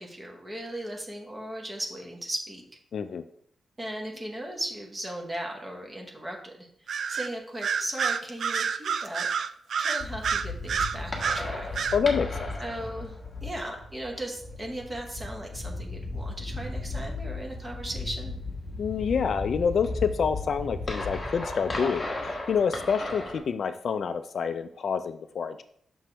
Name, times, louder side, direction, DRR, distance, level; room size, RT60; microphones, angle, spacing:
voice 1, 0.0-2.6 3.8-9.3 9.8-11.7 12.6-18.4, right 1 dB, 15° right, 1 dB, 1.1 m, -37 dB
voice 2, 2.9-3.2 11.9-12.5 18.8-25.6, left 6 dB, 50° left, 10 dB, 0.3 m, -27 dB
Bird vocalization bird call bird song, 6.9-7.3 7.6-11.4 11.7-12.0, right 6 dB, 55° right, 0.3 m, -28 dB
sound 1, 10.0-23.4, left 2 dB, 20° left, 1.1 m, -35 dB
6.1 x 5.8 x 3.3 m, 0.65 s
wide cardioid pair, 180°, 0 cm